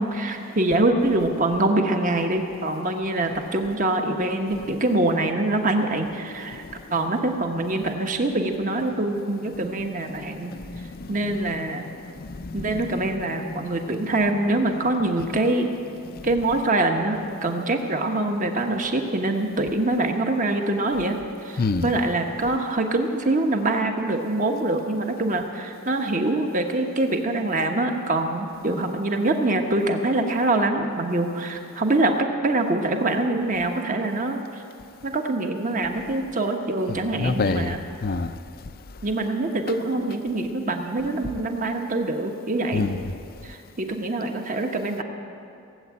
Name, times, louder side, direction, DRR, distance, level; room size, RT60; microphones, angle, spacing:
voice 1, 0.0-6.6 6.9-10.6 11.1-11.9 12.5-15.7 16.2-34.4 35.0-37.8 39.0-42.9 43.4-45.0, right 2 dB, 35° right, 4 dB, 1.1 m, -24 dB
voice 2, 10.5-11.1 12.3-12.8 16.1-16.2 21.6-21.9 37.2-38.3 42.7-43.0, left 3 dB, 40° left, 11 dB, 0.5 m, -27 dB
18.0 x 7.9 x 8.5 m, 2.5 s
head